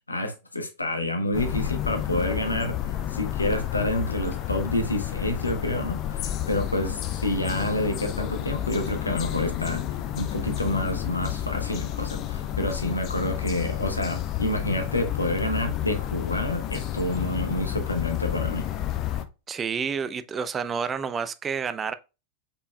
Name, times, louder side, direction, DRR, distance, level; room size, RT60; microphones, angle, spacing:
voice 1, 0.0-2.8 3.1-9.9 10.2-18.7, left 1 dB, 80° left, 0.9 m, -28 dB
sound 1, 1.3-19.2, left 12 dB, 35° left, 0.6 m, -30 dB
voice 2, 19.5-21.9, right 6 dB, 20° right, 0.4 m, -29 dB
5.1 x 4.4 x 2.2 m
figure-of-eight pair, 90°, 0 cm